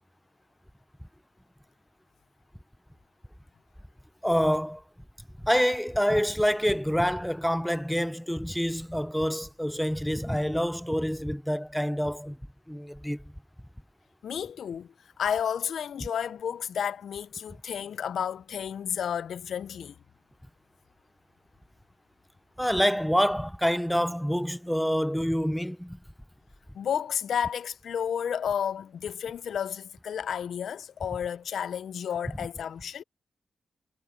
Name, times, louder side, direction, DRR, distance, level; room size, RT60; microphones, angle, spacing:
voice 1, 4.2-4.8 5.4-12.4 12.7-13.2 22.6-26.0, equal, ahead, 0.5 m, -27 dB
voice 2, 14.2-14.9 15.2-19.9 26.7-33.0, left 8 dB, 80° left, 0.5 m, -31 dB
cardioid pair, 105°, 0 cm